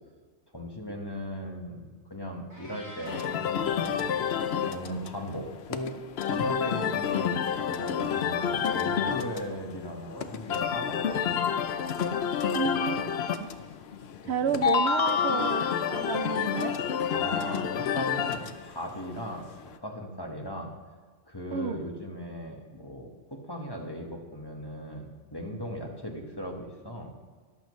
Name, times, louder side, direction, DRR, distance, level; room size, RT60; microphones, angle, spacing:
voice 1, 0.5-4.1 4.4-11.4 14.2-14.6 17.1-20.7 21.3-27.1, equal, 20° left, 1 dB, 1.3 m, -38 dB
Meow, 2.5-3.4, equal, 15° right, 3.5 m, -46 dB
sound 1, 3.1-19.7, left 7 dB, 65° left, 0.9 m, -29 dB
voice 2, 12.5-13.5 14.3-16.8 21.5-21.8, right 7 dB, 70° right, 9 dB, 0.8 m, -31 dB
14.0 x 11.5 x 3.2 m, 1.5 s
omnidirectional pair, 1.2 m